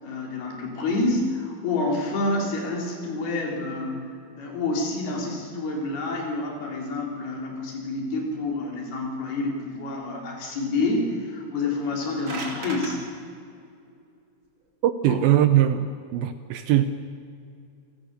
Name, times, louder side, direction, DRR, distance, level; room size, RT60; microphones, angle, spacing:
voice 1, 0.0-13.0 15.1-15.2, left 2 dB, 65° left, 0 dB, 5.3 m, -28 dB
sound 1, 11.8-13.0, right 2 dB, 35° right, 2.7 m, -35 dB
voice 2, 14.8-16.9, right 12 dB, 75° right, 10 dB, 2.4 m, -21 dB
28.5 x 17.5 x 6.7 m, 2.5 s
omnidirectional pair, 4.9 m